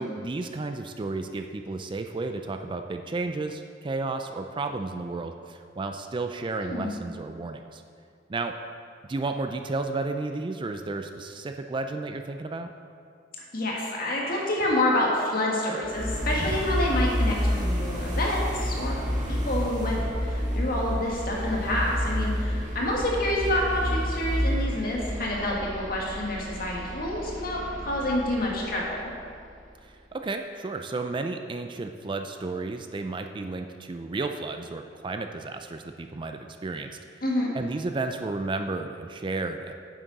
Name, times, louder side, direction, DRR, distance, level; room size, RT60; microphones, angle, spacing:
voice 1, 0.0-7.8 8.3-8.5 9.1-12.7 29.8-37.0 37.5-39.7, right 3 dB, 25° right, 6 dB, 0.4 m, -32 dB
voice 2, 6.6-6.9 13.5-19.0 19.3-29.1 37.2-37.5, left 1 dB, 55° left, -3 dB, 1.8 m, -28 dB
sound 1, 15.8-29.7, equal, 45° right, 1.6 m, -30 dB
9.8 x 7.5 x 4.0 m, 2.3 s
head